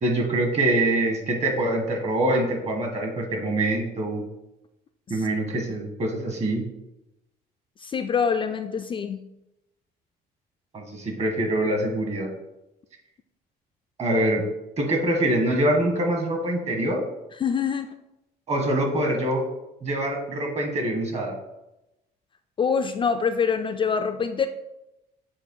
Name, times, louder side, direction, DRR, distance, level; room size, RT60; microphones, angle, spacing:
voice 1, 0.0-4.2 5.1-6.6 10.7-12.3 14.0-14.4 14.8-17.0 18.5-19.4 19.8-21.4, right 1 dB, 40° right, 2 dB, 1.4 m, -24 dB
voice 2, 7.8-9.2 17.4-17.9 22.6-24.5, left 6 dB, 30° left, 7 dB, 0.3 m, -25 dB
7.3 x 2.5 x 5.4 m, 0.92 s
cardioid pair, 110°, 17 cm